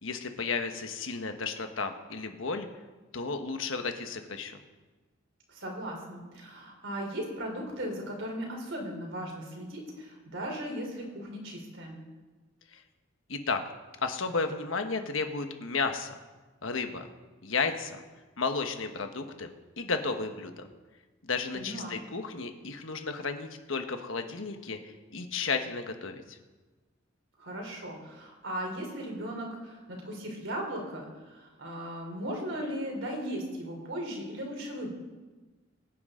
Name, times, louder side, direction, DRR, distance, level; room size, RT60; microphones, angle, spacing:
voice 1, 0.0-2.7 3.1-4.6 12.7-12.8 13.3-13.6 14.0-16.2 16.6-17.1 17.4-18.0 18.4-20.7 21.2-26.4, left 4 dB, 85° left, 6 dB, 1.3 m, -33 dB
voice 2, 5.5-11.9 21.5-22.0 27.4-34.9, equal, 70° right, 0 dB, 3.7 m, -37 dB
22.5 x 9.7 x 3.8 m, 1.3 s
head